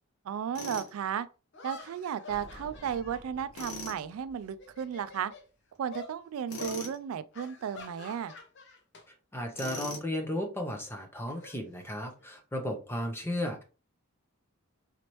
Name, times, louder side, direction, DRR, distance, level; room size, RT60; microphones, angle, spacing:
voice 1, 0.3-1.3 1.6-5.3 5.8-8.3, right 8 dB, 70° right, 0.3 m, -34 dB
Tools, 0.6-0.9 3.5-4.0 6.5-7.0 9.6-10.2, left 3 dB, 90° left, 1.3 m, -40 dB
sound 1, 0.7-0.8 1.5-4.2 4.5-5.5 5.9-6.1 6.6-6.8 7.3-9.0 9.3-9.6 10.8-12.3, left 3 dB, 55° left, 0.8 m, -48 dB
sound 2, 2.3-5.7, equal, 30° left, 1.1 m, -53 dB
voice 2, 9.3-13.6, left 1 dB, 10° left, 0.7 m, -34 dB
4.0 x 3.0 x 3.0 m
head